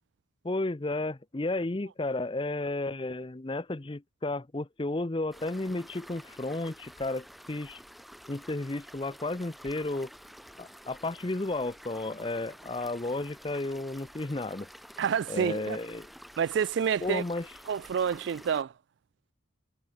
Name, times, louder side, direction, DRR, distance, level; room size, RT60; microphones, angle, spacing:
voice 1, 0.4-7.8 8.3-10.1 10.6-14.7 15.3-16.1 17.0-17.5, left 2 dB, 25° left, 0.6 m, -33 dB
sound 1, 5.3-18.6, equal, ahead, 3.3 m, -50 dB
voice 2, 15.0-15.8 16.4-17.2 17.7-18.7, right 7 dB, 60° right, 0.3 m, -28 dB
head